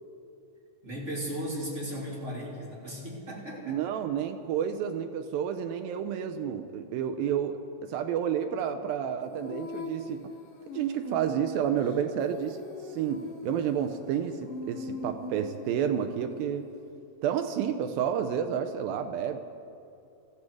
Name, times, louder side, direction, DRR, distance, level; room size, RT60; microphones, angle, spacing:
voice 1, 0.8-3.9, equal, 20° right, -5 dB, 3.1 m, -36 dB
voice 2, 3.7-10.3 10.7-16.7 17.2-19.4, right 8 dB, 80° right, 8 dB, 2.2 m, -30 dB
Female singing, 9.2-16.9, left 3 dB, 90° left, 4.1 m, -41 dB
20.5 x 14.5 x 4.8 m, 2.8 s
omnidirectional pair, 4.7 m